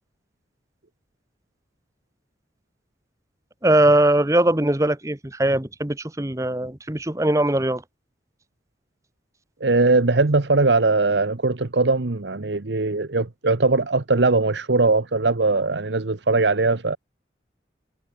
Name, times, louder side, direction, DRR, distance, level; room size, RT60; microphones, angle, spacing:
voice 1, 3.6-7.8, right 1 dB, 15° right, 1.0 m, -20 dB
voice 2, 9.6-17.0, right 3 dB, 75° right, 1.1 m, -20 dB
head